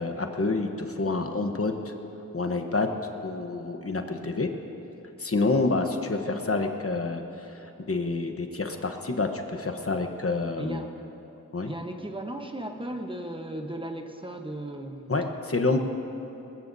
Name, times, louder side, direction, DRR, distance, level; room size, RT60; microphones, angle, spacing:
voice 1, 0.0-1.9 2.3-2.9 3.2-4.5 5.2-7.2 7.6-10.8 11.5-11.7 15.1-15.8, left 3 dB, 45° left, 4 dB, 1.0 m, -28 dB
voice 2, 10.6-10.9 11.7-15.2, right 1 dB, 15° right, 3 dB, 1.0 m, -36 dB
22.0 x 20.0 x 2.7 m, 2.9 s
wide cardioid pair, 85°, 33 cm